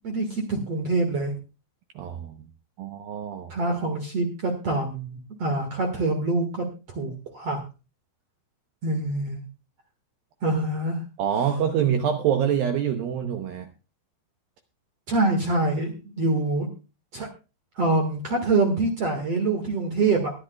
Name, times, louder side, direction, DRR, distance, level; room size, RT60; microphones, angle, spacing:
voice 1, 0.0-1.3 3.5-6.7 7.0-7.6 8.8-9.4 10.4-11.0 15.1-16.7 17.1-17.3 17.8-20.3, right 2 dB, 55° right, 4 dB, 1.7 m, -25 dB
voice 2, 2.0-2.3 2.8-3.5 11.2-13.7, right 8 dB, 80° right, 6 dB, 2.1 m, -25 dB
23.0 x 10.5 x 2.3 m, 0.31 s
omnidirectional pair, 5.3 m